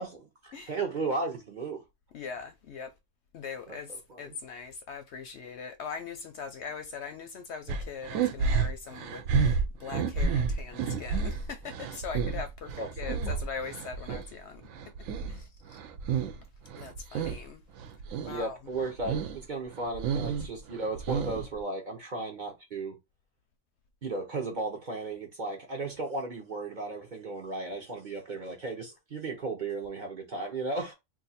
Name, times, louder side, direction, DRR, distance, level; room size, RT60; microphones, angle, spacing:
voice 1, 0.0-1.8 3.7-3.8 4.1-4.3 12.8-13.4 18.3-23.0 24.0-30.9, right 3 dB, 45° right, 0.7 m, -35 dB
voice 2, 2.1-2.9 3.3-14.6 15.3-15.8 16.8-17.6 18.2-18.6, left 6 dB, 65° left, 0.7 m, -41 dB
sound 1, 7.7-14.3 14.7-16.4 16.7-17.4 17.8-18.4 18.7-19.4 19.7-21.6, right 5 dB, 75° right, 0.9 m, -30 dB
2.6 x 2.4 x 4.0 m
omnidirectional pair, 1.4 m